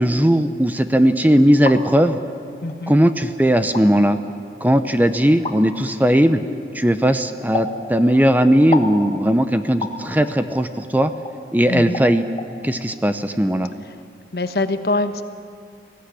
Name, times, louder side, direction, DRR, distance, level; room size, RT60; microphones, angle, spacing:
voice 1, 0.0-2.2 2.9-4.2 4.6-6.4 6.7-11.1 11.5-12.2 12.6-13.7, equal, 10° right, 9 dB, 0.6 m, -17 dB
sound 1, 1.4-1.8 2.7-2.8 3.6-3.9 5.4-5.6 7.5-7.8 8.7-9.0 9.8-10.0 11.3-11.4 11.9-12.1 12.4-12.5, left 3 dB, 30° left, 1.6 m, -27 dB
voice 2, 2.6-2.9 11.7-12.0 13.8-14.0 14.3-15.2, left 2 dB, 60° left, 9 dB, 1.2 m, -24 dB
21.5 x 16.0 x 9.9 m, 2.3 s
head